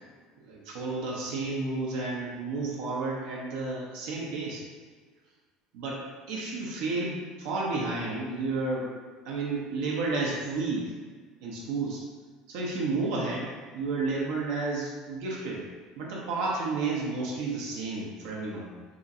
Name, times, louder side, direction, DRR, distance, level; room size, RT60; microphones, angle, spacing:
voice 1, 0.4-4.6 5.7-8.9 9.2-10.9 11.4-12.0 12.5-15.6 16.0-18.7, right 3 dB, 80° right, -3 dB, 0.6 m, -31 dB
2.9 x 2.5 x 2.6 m, 1.5 s
supercardioid pair, 110°, 2 cm